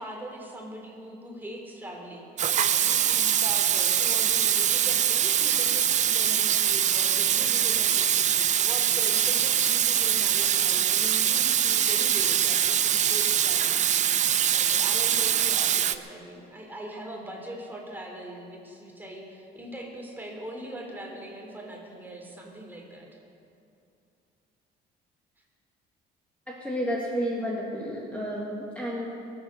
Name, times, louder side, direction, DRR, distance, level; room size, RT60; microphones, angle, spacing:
voice 1, 0.0-14.0 14.4-23.2, right 1 dB, 10° right, -1 dB, 3.3 m, -41 dB
Water tap faucet / Sink (filling or washing), 2.4-16.0, right 9 dB, 45° right, 0.6 m, -23 dB
voice 2, 26.5-29.1, equal, 10° left, -4 dB, 2.4 m, -31 dB
22.5 x 8.0 x 6.8 m, 2.6 s
cardioid pair, 110°, 17 cm